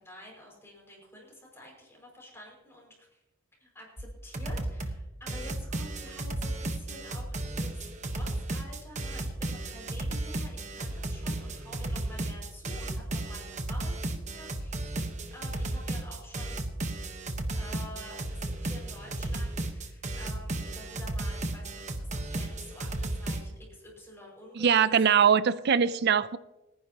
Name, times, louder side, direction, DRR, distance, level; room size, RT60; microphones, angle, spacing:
voice 1, 0.0-3.2 3.6-15.0 15.3-16.6 17.5-25.0, left 1 dB, 10° left, -3 dB, 5.7 m, -49 dB
sound 1, 4.0-4.1 4.3-5.0 5.3-23.4, right 2 dB, 35° right, 1.1 m, -34 dB
voice 2, 24.6-26.4, right 7 dB, 50° right, 16 dB, 0.4 m, -22 dB
29.0 x 10.5 x 2.9 m, 1.0 s
head